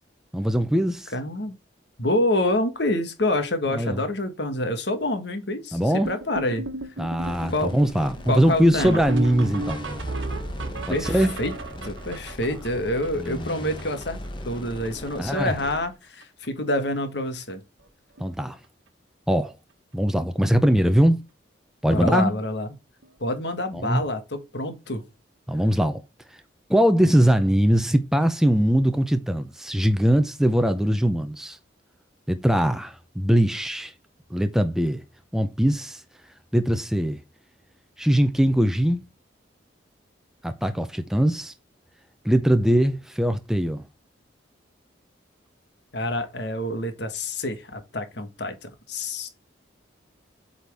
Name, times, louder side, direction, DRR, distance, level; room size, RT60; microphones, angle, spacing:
voice 1, 0.3-1.1 3.7-4.0 5.7-6.1 7.0-9.9 11.0-11.3 13.2-13.6 15.2-15.5 18.2-18.6 19.3-19.5 19.9-21.2 21.8-22.3 23.7-24.0 25.5-26.0 26.7-31.6 32.3-33.9 34.3-35.0 35.3-36.0 36.5-37.2 38.0-39.0 40.4-41.5 42.2-43.8, equal, 5° right, 0.6 m, -21 dB
voice 2, 1.1-1.5 2.0-6.7 7.5-7.7 8.3-9.0 10.9-11.5 11.8-14.2 14.4-17.6 21.9-22.7 23.2-25.0 45.9-49.3, left 1 dB, 60° left, 1.5 m, -27 dB
sound 1, 6.0-14.3 14.5-14.6 14.8-15.1 15.4-15.9 16.2-16.5 17.3-17.4 17.8-17.9 18.2-18.3 20.6-20.7 23.0-23.1, right 2 dB, 80° right, 1.3 m, -34 dB
sound 2, 7.2-15.8, left 1 dB, 25° left, 1.0 m, -39 dB
8.0 x 4.2 x 3.5 m
head